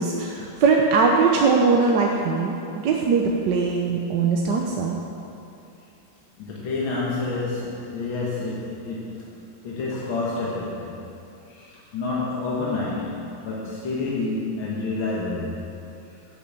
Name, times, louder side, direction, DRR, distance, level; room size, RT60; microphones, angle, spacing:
voice 1, 0.0-5.0, right 4 dB, 65° right, 0 dB, 1.3 m, -21 dB
voice 2, 6.4-15.7, left 3 dB, 70° left, -5 dB, 2.2 m, -29 dB
11.5 x 7.1 x 7.6 m, 2.8 s
omnidirectional pair, 2.3 m